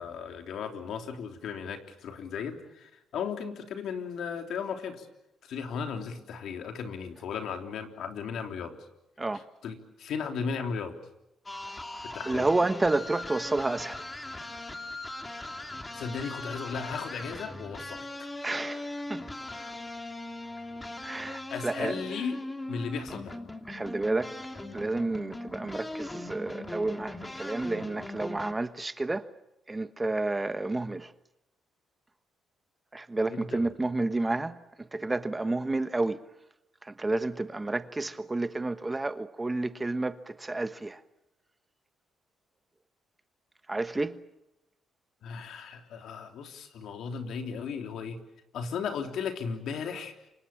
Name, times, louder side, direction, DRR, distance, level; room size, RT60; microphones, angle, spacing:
voice 1, 0.0-5.1 5.4-8.9 9.6-11.0 12.0-12.5 15.2-15.4 15.9-18.3 21.5-23.4 33.3-33.7 45.2-48.2 48.5-50.1, left 6 dB, 75° left, 3.4 m, -36 dB
sound 1, 11.5-28.5, left 2 dB, 15° left, 2.7 m, -40 dB
voice 2, 11.7-14.1 18.4-19.3 21.0-21.9 23.7-24.3 24.7-29.2 29.7-31.1 32.9-36.2 36.8-41.0 43.7-44.2, right 2 dB, 20° right, 1.2 m, -30 dB
28.0 x 25.0 x 7.2 m
cardioid pair, 90°, 0 cm